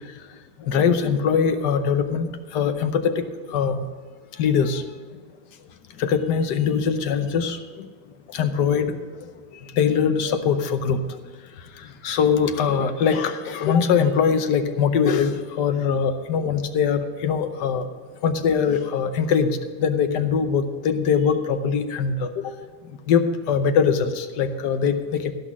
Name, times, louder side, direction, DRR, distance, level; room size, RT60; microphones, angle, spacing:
voice 1, 0.6-3.8 4.4-4.8 6.0-7.9 8.3-9.3 9.7-11.0 11.8-17.9 18.2-19.5 19.8-22.5 23.1-25.3, left 6 dB, 80° left, 9 dB, 1.4 m, -22 dB
15.0 x 6.1 x 6.1 m, 1.5 s
omnidirectional pair, 1.8 m